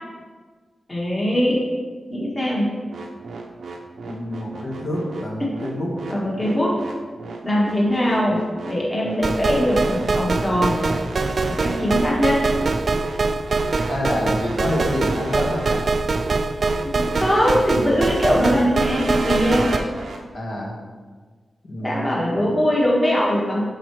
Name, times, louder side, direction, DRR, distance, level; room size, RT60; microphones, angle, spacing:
voice 1, 0.9-1.6 2.1-2.7 5.4-5.6 6.1-6.8 7.4-8.4 8.7-10.8 11.5-12.5 16.8-19.7 21.8-23.6, equal, 15° left, -5 dB, 1.5 m, -21 dB
sound 1, 2.9-20.2, right 3 dB, 90° right, 0.7 m, -35 dB
voice 2, 4.1-5.9 13.9-15.9 20.3-20.7 21.7-22.2, equal, 55° left, -3 dB, 1.5 m, -27 dB
sound 2, 9.2-19.8, right 3 dB, 45° right, 0.3 m, -23 dB
11.5 x 4.8 x 3.1 m, 1.5 s
wide cardioid pair, 155°, 0 cm